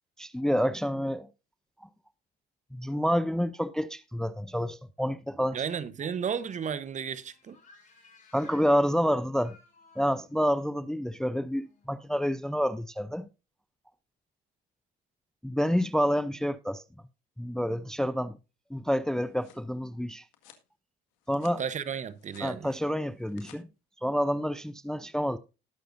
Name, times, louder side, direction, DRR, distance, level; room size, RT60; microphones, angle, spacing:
voice 1, 0.2-1.3 2.7-5.6 8.3-9.6 10.0-13.3 15.4-16.8 17.4-18.4 18.7-20.2 21.3-21.6 22.4-23.7 24.0-25.4, equal, 5° left, 0.5 m, -28 dB
voice 2, 5.5-7.6 21.6-22.7, right 7 dB, 40° right, 1.0 m, -33 dB
sound 1, 6.8-12.8, left 4 dB, 45° left, 6.2 m, -60 dB
sound 2, 19.0-19.7 20.3-20.7 21.1-21.6 22.0-22.5 23.1-23.6, left 11 dB, 85° left, 1.8 m, -56 dB
19.0 x 6.6 x 2.6 m
supercardioid pair, 85°, 20 cm